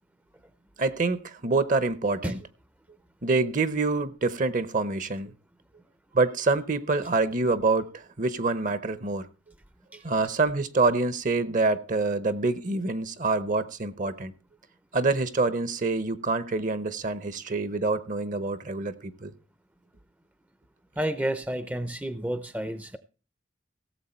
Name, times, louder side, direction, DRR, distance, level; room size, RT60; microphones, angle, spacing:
voice 1, 0.8-2.4 3.2-5.3 6.1-9.3 10.0-14.3 14.9-19.3, right 3 dB, 45° right, 0.9 m, -26 dB
voice 2, 21.0-23.0, right 1 dB, 10° right, 0.6 m, -30 dB
17.0 x 7.5 x 4.3 m
head